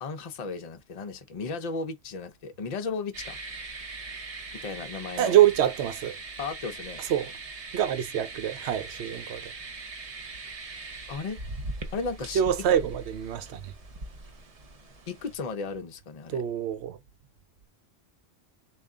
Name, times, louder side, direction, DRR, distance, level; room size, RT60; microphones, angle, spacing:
voice 1, 0.0-3.4 4.6-5.4 6.4-7.0 11.1-11.4 11.9-12.7 15.1-16.4, left 4 dB, 45° left, 0.6 m, -35 dB
sound 1, 3.1-15.3, right 3 dB, 40° right, 0.7 m, -41 dB
voice 2, 5.2-6.2 7.1-7.3 7.7-9.5 12.3-13.7 16.3-17.0, right 10 dB, 80° right, 0.9 m, -25 dB
3.5 x 2.4 x 3.6 m
omnidirectional pair, 1.1 m